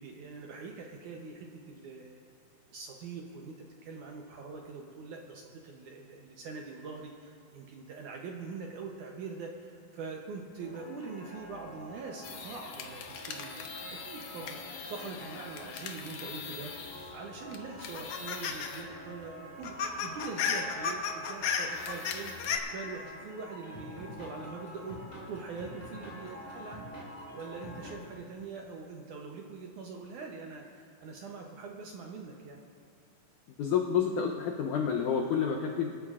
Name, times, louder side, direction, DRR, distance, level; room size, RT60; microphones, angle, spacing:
voice 1, 0.0-2.2 2.7-22.4 22.7-25.0 25.3-26.9 27.3-32.6, right 4 dB, 75° right, 1 dB, 1.9 m, -43 dB
sound 1, 10.6-27.9, left 1 dB, 10° left, 3.0 m, -47 dB
sound 2, 12.2-17.2 17.5-18.8 19.1-19.2 19.5-22.6, left 6 dB, 70° left, 1.7 m, -37 dB
voice 2, 33.6-35.9, left 7 dB, 90° left, 1 dB, 1.7 m, -29 dB
24.5 x 12.5 x 2.5 m, 2.2 s
omnidirectional pair, 4.5 m